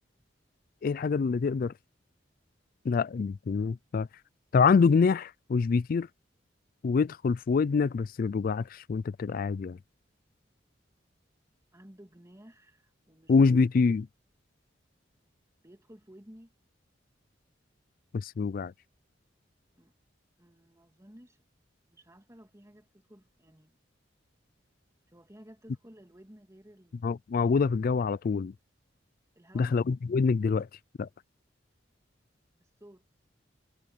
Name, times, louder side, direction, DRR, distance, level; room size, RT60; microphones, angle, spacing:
voice 1, 0.8-1.7 2.9-4.1 4.5-6.1 6.8-9.8 13.3-14.1 18.1-18.7 27.0-28.5 29.5-30.7 31.0-31.1, left 5 dB, 50° left, 0.3 m, -25 dB
voice 2, 11.7-13.5 15.6-16.5 19.8-19.9 20.4-21.4 21.9-23.8 25.1-27.1 29.4-29.8 32.6-33.0, equal, 15° right, 2.6 m, -54 dB
head